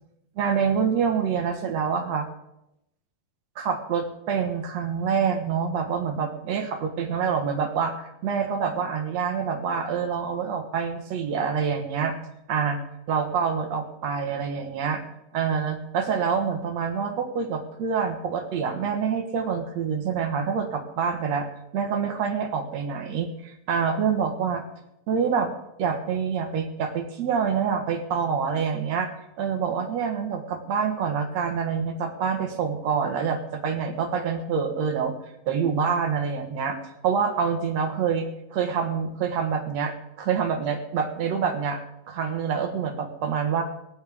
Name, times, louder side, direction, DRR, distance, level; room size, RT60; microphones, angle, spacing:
voice 1, 0.4-2.3 3.6-12.2 12.5-12.8 13.1-15.0 15.3-21.5 21.7-24.6 25.1-25.5 25.8-35.1 35.5-36.8 37.0-38.3 38.5-41.8 42.1-43.6, right 6 dB, 60° right, 5 dB, 2.3 m, -26 dB
25.0 x 8.6 x 3.6 m, 0.85 s
omnidirectional pair, 4.0 m